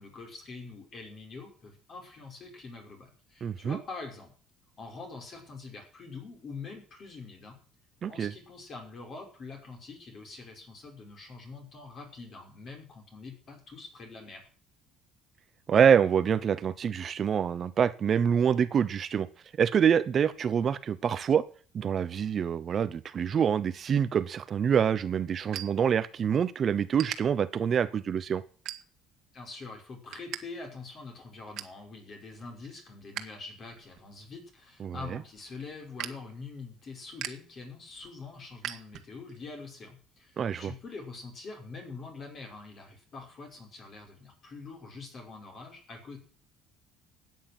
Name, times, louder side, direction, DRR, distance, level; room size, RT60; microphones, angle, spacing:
voice 1, 0.0-4.3 4.8-7.6 8.1-14.4 29.3-46.2, left 4 dB, 35° left, 4 dB, 5.5 m, -44 dB
voice 2, 3.4-3.8 8.0-8.3 15.7-19.3 19.6-21.4 21.7-28.4 34.8-35.2 40.4-40.7, right 7 dB, 35° right, 13 dB, 0.7 m, -26 dB
sound 1, 24.5-26.5 26.7-27.2 27.8-28.0 28.5-29.2 29.6-30.4 30.7-30.8 31.2-31.8 32.3-33.2 33.6-39.4, right 12 dB, 55° right, 1.6 m, -42 dB
13.5 x 9.4 x 7.7 m, 0.42 s
cardioid pair, 150°, 0 cm